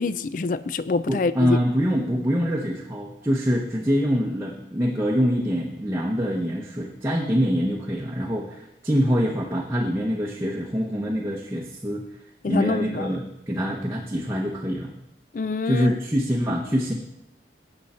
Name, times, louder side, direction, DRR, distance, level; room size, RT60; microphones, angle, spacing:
voice 1, 0.0-1.6 12.4-13.1 15.3-15.9, left 3 dB, 45° left, 15 dB, 0.4 m, -26 dB
voice 2, 1.1-12.0 12.5-14.9 15.6-16.9, equal, 15° right, -2 dB, 0.8 m, -25 dB
11.5 x 7.8 x 4.3 m, 0.85 s
head